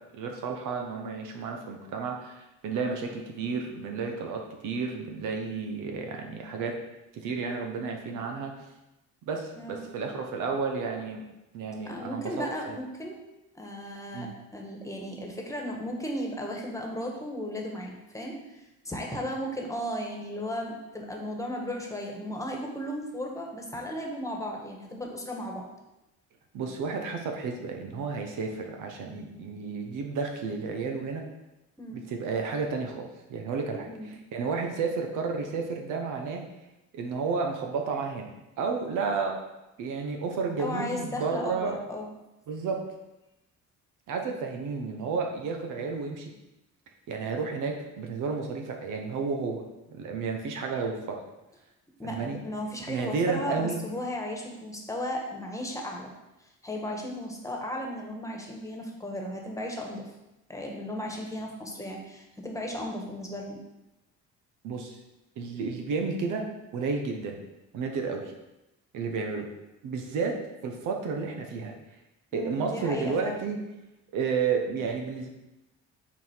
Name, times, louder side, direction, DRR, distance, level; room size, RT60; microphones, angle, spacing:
voice 1, 0.1-6.8 7.1-8.5 9.3-11.2 11.5-12.8 14.1-14.3 26.5-31.2 31.9-36.4 36.9-38.3 38.6-39.4 39.8-41.8 42.5-42.8 44.1-46.3 47.1-49.6 49.9-51.2 52.0-52.4 52.9-53.8 64.6-65.0 65.4-67.4 67.7-68.3 68.9-69.5 69.8-71.7 72.3-73.6 74.1-75.3, right 5 dB, 90° right, 3 dB, 1.0 m, -32 dB
voice 2, 11.9-13.2 13.5-18.4 18.8-25.7 31.8-32.0 33.9-34.1 40.6-42.1 52.0-56.1 56.6-60.1 60.5-63.6 72.3-73.4, equal, 10° left, 0 dB, 1.4 m, -35 dB
6.0 x 4.2 x 4.5 m, 0.95 s
cardioid pair, 90°, 30 cm